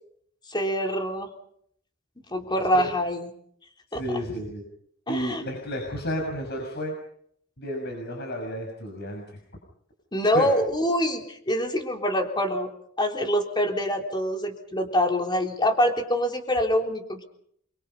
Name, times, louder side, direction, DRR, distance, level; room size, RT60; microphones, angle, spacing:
voice 1, 0.5-1.3 2.3-3.3 3.9-4.0 5.1-5.4 10.1-12.7 13.0-17.2, equal, 20° left, 3 dB, 3.7 m, -25 dB
voice 2, 3.9-4.6 5.1-6.9 7.6-9.4 10.3-10.5, equal, 55° left, 1 dB, 6.3 m, -32 dB
28.5 x 24.0 x 5.6 m, 0.67 s
head